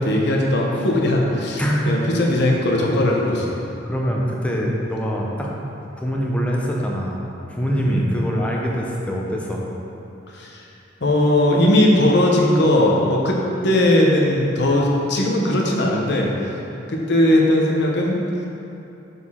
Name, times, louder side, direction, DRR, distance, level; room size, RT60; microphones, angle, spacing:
voice 1, 0.0-3.5 7.8-8.0 10.3-10.6 11.0-16.3 16.9-18.2, left 1 dB, 60° left, -1 dB, 0.8 m, -18 dB
voice 2, 3.8-5.5 6.0-7.2 7.5-9.6, equal, 5° left, -2 dB, 0.6 m, -24 dB
6.8 x 4.2 x 3.6 m, 2.8 s
head